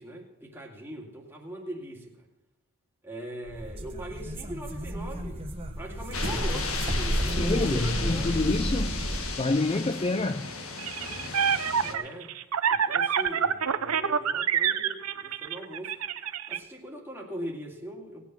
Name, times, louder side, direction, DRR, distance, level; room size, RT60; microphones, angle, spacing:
voice 1, 0.0-2.3 3.0-8.4 11.8-12.3 12.7-15.9 16.5-18.2, right 1 dB, 10° right, 2.2 m, -40 dB
sound 1, 3.5-9.4, equal, 25° right, 1.5 m, -31 dB
sound 2, 6.1-11.9, left 4 dB, 70° left, 1.6 m, -35 dB
voice 2, 7.3-9.1 9.4-10.5, left 2 dB, 25° left, 0.4 m, -27 dB
sound 3, 10.8-16.6, right 7 dB, 80° right, 0.7 m, -27 dB
18.5 x 8.6 x 5.9 m
head